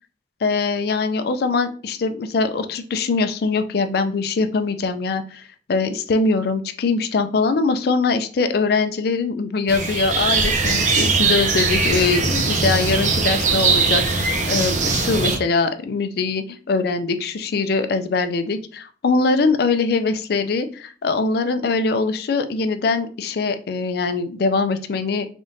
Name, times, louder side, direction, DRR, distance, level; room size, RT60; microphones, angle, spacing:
voice 1, 0.4-5.4 5.7-25.3, left 4 dB, 60° left, 9 dB, 0.4 m, -22 dB
sound 1, 9.7-15.4, right 4 dB, 45° right, 0.6 m, -20 dB
3.7 x 3.5 x 2.6 m, 0.42 s
head